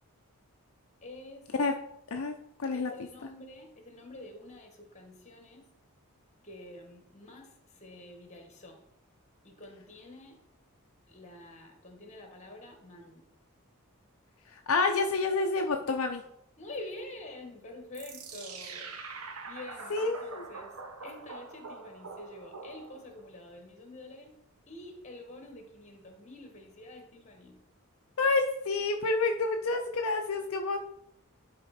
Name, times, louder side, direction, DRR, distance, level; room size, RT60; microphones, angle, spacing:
voice 1, 1.0-1.5 2.7-5.7 6.4-8.8 9.4-10.4 11.1-13.2 16.6-18.9 19.5-20.7 21.0-24.4 24.7-27.6, left 2 dB, 30° left, 3 dB, 1.5 m, -47 dB
voice 2, 2.1-2.9 14.5-16.2 19.9-20.4 28.2-30.8, left 3 dB, 70° left, 4 dB, 0.6 m, -29 dB
sound 1, 17.9-23.2, right 4 dB, 75° right, 1.0 m, -44 dB
11.0 x 4.1 x 4.2 m, 0.77 s
head